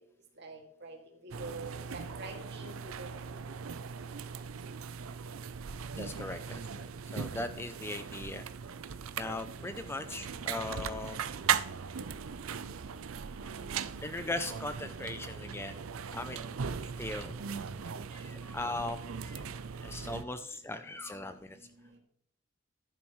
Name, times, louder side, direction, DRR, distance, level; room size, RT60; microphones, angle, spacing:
voice 1, 0.4-1.0 1.2-3.9 4.3-4.4 21.1-21.2 21.9-22.0, right 3 dB, 55° right, 2 dB, 2.2 m, -47 dB
sound 1, 1.3-20.2, right 7 dB, 80° right, 0.5 m, -39 dB
voice 2, 6.0-6.8 7.1-8.4 9.2-11.2 13.4-13.5 14.0-15.8 16.1-16.6 17.0-17.3 18.1-19.5 19.8-21.6, left 2 dB, 10° left, 10 dB, 0.4 m, -39 dB
10.5 x 10.5 x 3.1 m, 0.68 s
head